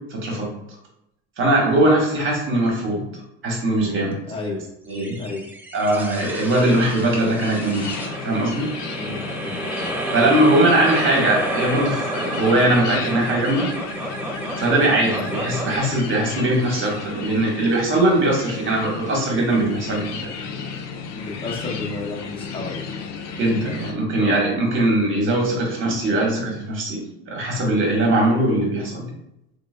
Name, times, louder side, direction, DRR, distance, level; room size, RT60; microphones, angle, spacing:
voice 1, 0.1-0.5 1.4-3.0 3.4-4.2 4.9-5.2 5.7-8.7 10.1-13.7 14.6-20.3 23.4-27.0 27.3-29.1, right 1 dB, 40° right, -1 dB, 1.3 m, -20 dB
voice 2, 4.3-4.6 5.2-5.5 8.9-9.9 21.1-22.9, left 3 dB, 20° left, -2 dB, 0.8 m, -32 dB
sound 1, 4.9-17.5, right 1 dB, 5° right, 0.4 m, -30 dB
sound 2, 6.5-23.9, left 5 dB, 65° left, 0.6 m, -34 dB
3.2 x 2.2 x 3.2 m, 0.83 s
supercardioid pair, 110°, 30 cm